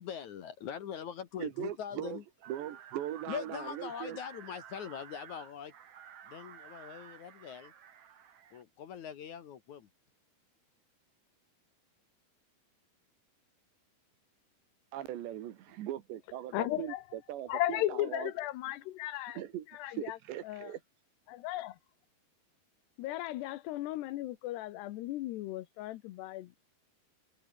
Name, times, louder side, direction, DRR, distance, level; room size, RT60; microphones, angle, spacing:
voice 1, 0.0-2.2 3.3-5.7 6.2-7.7 8.5-9.9, left 8 dB, 60° left, 2.2 m, -42 dB
voice 2, 1.4-2.2 2.5-4.2 14.9-18.3 19.4-19.7 19.9-20.8, right 12 dB, 90° right, 4.0 m, -40 dB
sound 1, 2.4-8.6, right 8 dB, 50° right, 2.1 m, -53 dB
voice 3, 16.5-17.0 17.5-19.4 19.7-20.2 20.5-20.7 21.3-21.8 23.0-26.5, left 15 dB, 80° left, 3.1 m, -36 dB
omnidirectional pair, 4.9 m